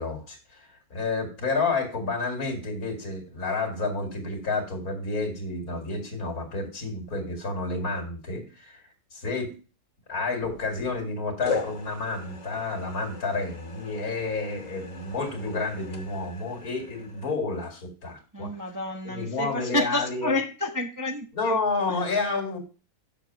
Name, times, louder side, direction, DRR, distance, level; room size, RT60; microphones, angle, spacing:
voice 1, 0.0-8.8 9.1-9.5 10.1-18.5 19.0-20.4 21.3-22.6, left 3 dB, 75° left, 2 dB, 2.7 m, -30 dB
sound 1, 10.4-11.0 11.4-17.4, left 4 dB, 30° left, 1.0 m, -39 dB
voice 2, 18.3-21.6, left 1 dB, 20° right, 3 dB, 0.5 m, -29 dB
7.3 x 6.6 x 4.5 m, 0.36 s
omnidirectional pair, 1.6 m